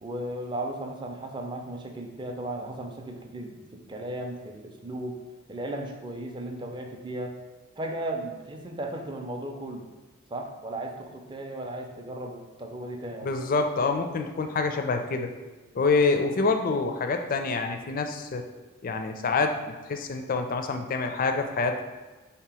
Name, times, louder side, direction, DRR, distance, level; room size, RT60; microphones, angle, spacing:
voice 1, 0.0-5.2 5.5-7.4 7.8-9.9 10.3-13.3, right 1 dB, 20° right, 3 dB, 0.4 m, -36 dB
voice 2, 13.2-15.3 15.7-18.4 18.8-19.6 19.9-21.8, left 4 dB, 40° left, 6 dB, 0.4 m, -26 dB
3.5 x 2.9 x 4.7 m, 1.2 s
head